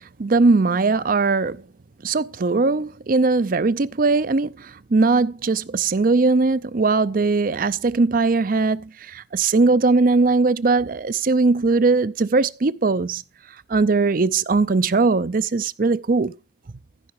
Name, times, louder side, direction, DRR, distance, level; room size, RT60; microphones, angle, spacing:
voice 1, 0.2-1.6 2.0-4.5 4.9-8.8 9.1-13.2 13.7-16.3, right 3 dB, 55° right, 0.6 m, -19 dB
15.0 x 5.7 x 4.8 m
head